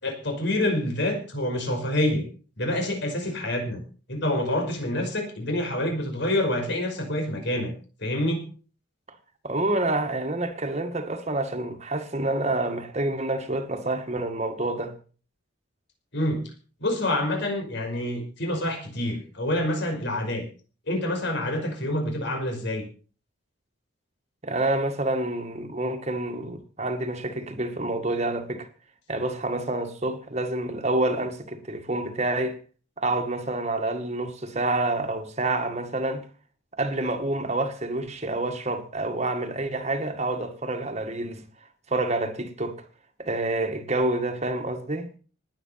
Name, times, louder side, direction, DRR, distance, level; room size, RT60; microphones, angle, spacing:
voice 1, 0.0-2.3 2.6-3.8 4.1-7.7 8.0-8.5 16.1-16.5 16.8-20.4 20.9-22.8, left 1 dB, 55° left, 5.5 m, -27 dB
voice 2, 9.4-14.9 24.4-28.7 29.1-32.6 33.0-36.2 36.7-41.4 41.9-42.8 43.2-45.1, right 2 dB, 30° right, 2.0 m, -28 dB
19.0 x 9.1 x 5.9 m
head